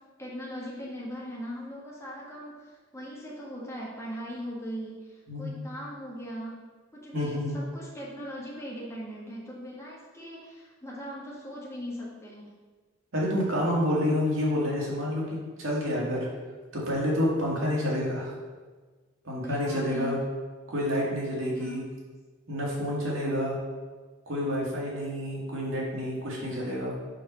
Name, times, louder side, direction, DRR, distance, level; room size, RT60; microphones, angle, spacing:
voice 1, 0.2-6.6 6.9-12.5 19.4-20.2 21.6-21.9, equal, 15° left, -5 dB, 1.5 m, -39 dB
voice 2, 7.1-7.6 13.1-16.2 16.7-18.3 19.2-20.2 20.7-21.8 22.5-23.6 24.3-26.9, equal, 85° right, -5 dB, 2.0 m, -28 dB
5.0 x 4.5 x 5.6 m, 1.4 s
head